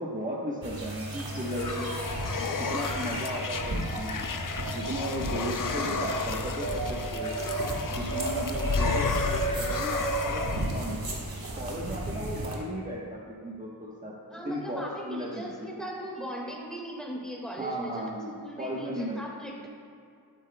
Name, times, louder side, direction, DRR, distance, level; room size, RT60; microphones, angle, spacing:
voice 1, 0.0-2.0 2.6-4.2 4.7-7.3 7.9-11.0 11.5-14.1 14.4-15.7 17.6-19.2, equal, 20° right, -5 dB, 1.1 m, -35 dB
sound 1, 0.6-12.5, right 2 dB, 65° right, 1.4 m, -33 dB
sound 2, 0.9-10.9, left 5 dB, 55° left, 0.6 m, -33 dB
voice 2, 14.3-18.0 18.4-19.7, right 1 dB, ahead, -2 dB, 1.7 m, -38 dB
12.0 x 7.9 x 2.2 m, 2.3 s
wide cardioid pair, 45°, 38 cm